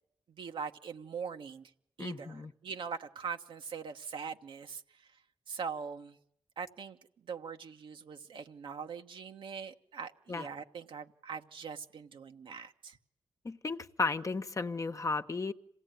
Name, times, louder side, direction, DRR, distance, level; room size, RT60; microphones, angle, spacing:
voice 1, 0.3-1.7 2.0-4.8 5.5-6.2 6.6-7.0 7.3-13.0, right 6 dB, 75° right, 1.3 m, -42 dB
voice 2, 2.0-2.5 10.3-10.5 13.4-15.5, left 4 dB, 40° left, 1.1 m, -34 dB
27.0 x 17.0 x 9.2 m
cardioid pair, 60°, 9 cm